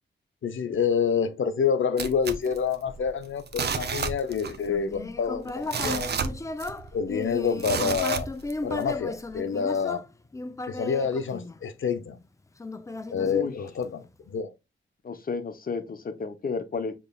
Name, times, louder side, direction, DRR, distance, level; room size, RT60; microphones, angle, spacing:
voice 1, 0.4-6.3 6.9-8.3 8.6-10.0 10.7-12.2 13.1-14.5, left 6 dB, 80° left, 0.6 m, -27 dB
sound 1, 2.0-3.1 3.5-4.7 4.9-5.0 5.5-7.0 7.6-8.8 9.3-9.4, right 5 dB, 55° right, 0.5 m, -31 dB
Human voice, 4.6-12.0 12.6-14.0, left 2 dB, 15° left, 0.3 m, -36 dB
voice 2, 13.2-13.5 15.0-16.9, left 4 dB, 45° left, 0.7 m, -32 dB
5.4 x 2.9 x 2.2 m
wide cardioid pair, 150°, 20 cm